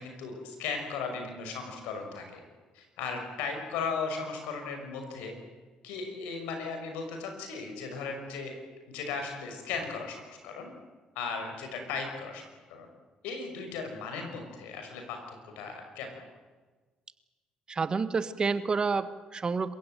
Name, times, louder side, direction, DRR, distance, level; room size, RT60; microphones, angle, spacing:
voice 1, 0.0-2.4 2.7-5.3 5.8-8.5 8.9-10.7 11.1-12.9 13.2-16.1, left 5 dB, 90° left, 5 dB, 6.0 m, -37 dB
voice 2, 17.7-19.7, right 4 dB, 35° right, 12 dB, 1.6 m, -29 dB
27.5 x 16.0 x 9.3 m, 1.3 s
cardioid pair, 80°, 2 cm